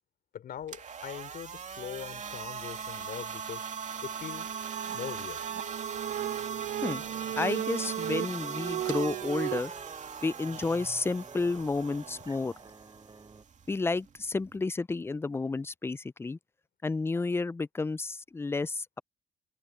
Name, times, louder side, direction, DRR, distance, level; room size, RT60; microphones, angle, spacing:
voice 1, 0.3-3.7 4.0-4.6 4.9-5.4, left 10 dB, 65° left, 3.7 m, -42 dB
sound 1, 0.6-14.6, right 6 dB, 50° right, 2.6 m, -40 dB
sound 2, 4.3-9.6, right 12 dB, 80° right, 0.9 m, -36 dB
sound 3, 5.9-13.4, right 4 dB, 25° right, 3.1 m, -52 dB
voice 2, 7.4-9.7 10.2-12.5 13.7-16.4 16.8-19.0, left 3 dB, 15° left, 0.4 m, -31 dB
cardioid pair, 80°, 16 cm